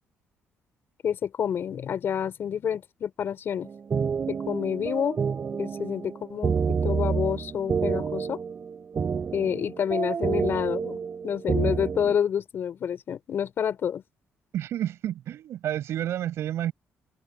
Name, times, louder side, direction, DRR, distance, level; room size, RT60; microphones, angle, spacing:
voice 1, 1.0-3.7 4.3-5.2 5.6-8.4 9.3-14.0, left 8 dB, 55° left, 5.2 m, -28 dB
sound 1, 3.6-12.2, right 6 dB, 40° right, 4.7 m, -29 dB
voice 2, 14.5-16.7, right 11 dB, 70° right, 6.7 m, -30 dB
open air
cardioid pair, 125°, 5 cm